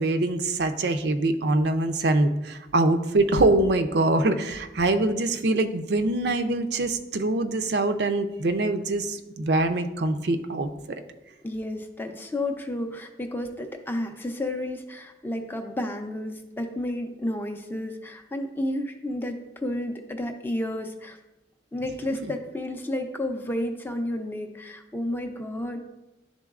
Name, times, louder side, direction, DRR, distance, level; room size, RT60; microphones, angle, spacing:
voice 1, 0.0-11.0, right 2 dB, 65° right, 8 dB, 0.5 m, -24 dB
voice 2, 11.4-21.2 21.7-25.8, left 1 dB, 10° left, 5 dB, 0.5 m, -31 dB
11.0 x 3.8 x 2.4 m, 1.0 s
head